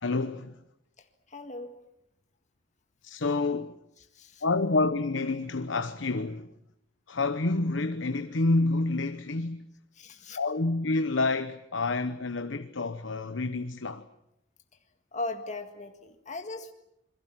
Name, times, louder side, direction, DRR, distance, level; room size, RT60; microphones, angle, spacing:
voice 1, 0.0-0.6 3.0-3.8 4.4-6.5 7.1-9.6 10.4-14.1, left 3 dB, 85° left, 1.0 m, -28 dB
voice 2, 1.0-1.7 4.1-4.4 10.0-10.4 15.1-16.7, left 2 dB, 40° left, 1.8 m, -38 dB
28.0 x 22.0 x 7.5 m
head